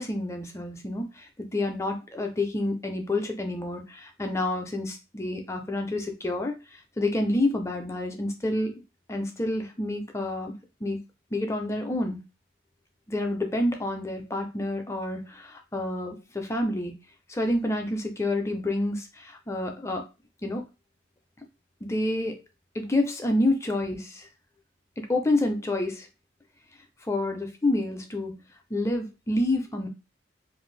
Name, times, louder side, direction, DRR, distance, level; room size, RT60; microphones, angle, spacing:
voice 1, 0.0-8.8 9.1-11.0 11.3-12.2 13.1-17.0 17.3-20.1 20.4-20.6 21.8-22.4 22.7-24.3 25.0-26.1 27.1-28.4 28.7-29.9, left 1 dB, 15° left, 4 dB, 0.4 m, -28 dB
2.5 x 2.5 x 3.2 m, 0.28 s
head